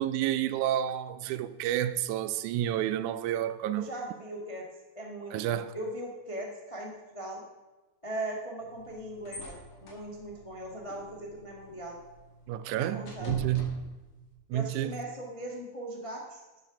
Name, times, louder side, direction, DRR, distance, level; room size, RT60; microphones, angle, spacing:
voice 1, 0.0-3.9 5.3-5.7 12.5-13.8 14.5-15.0, right 11 dB, 80° right, 1.9 m, -30 dB
voice 2, 3.8-4.6 4.9-7.4 8.0-9.6 9.8-12.0 12.9-13.3 14.5-16.4, right 1 dB, 35° left, 0.5 m, -39 dB
sound 1, 8.6-14.3, left 1 dB, 90° left, 4.0 m, -46 dB
12.0 x 7.7 x 6.0 m
omnidirectional pair, 3.5 m